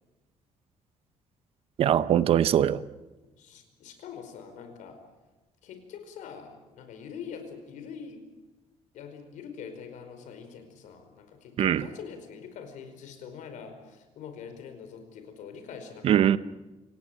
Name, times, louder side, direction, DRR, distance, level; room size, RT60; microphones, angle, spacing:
voice 1, 1.8-2.8 11.6-11.9 16.0-16.4, right 10 dB, 50° right, 0.7 m, -21 dB
voice 2, 3.3-5.0 5.6-8.2 8.9-16.3, left 7 dB, 90° left, 4.8 m, -44 dB
27.0 x 18.0 x 8.9 m
cardioid pair, 180°, 13 cm